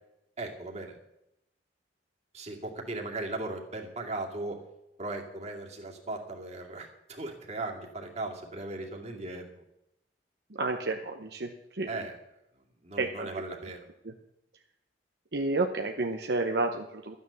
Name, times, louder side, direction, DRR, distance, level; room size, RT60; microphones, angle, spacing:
voice 1, 0.4-1.0 2.3-4.6 5.0-9.6 11.9-12.2 12.8-13.9, right 2 dB, 40° right, 1 dB, 2.3 m, -37 dB
voice 2, 10.5-11.9 13.0-13.3 14.0-14.1 15.3-17.2, right 3 dB, 65° right, 4 dB, 0.9 m, -31 dB
13.0 x 9.4 x 7.0 m, 0.87 s
head